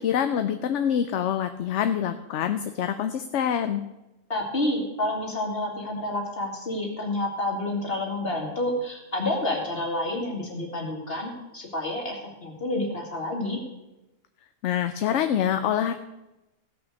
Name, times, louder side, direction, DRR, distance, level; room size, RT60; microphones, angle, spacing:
voice 1, 0.0-3.8 14.6-15.9, left 9 dB, 65° left, 9 dB, 0.9 m, -25 dB
voice 2, 4.3-13.6, left 1 dB, 45° left, -1 dB, 2.7 m, -29 dB
16.5 x 6.0 x 6.3 m, 1.0 s
omnidirectional pair, 1.4 m